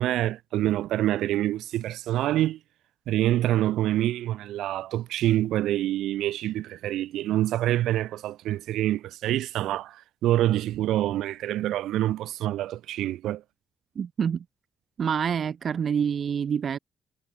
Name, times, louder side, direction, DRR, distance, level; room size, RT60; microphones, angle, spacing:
voice 1, 0.0-2.6 3.1-13.4, right 14 dB, 85° right, 2.2 m, -26 dB
voice 2, 13.9-14.4 15.0-16.8, right 7 dB, 50° right, 1.2 m, -27 dB
cardioid pair, 90°, 0 cm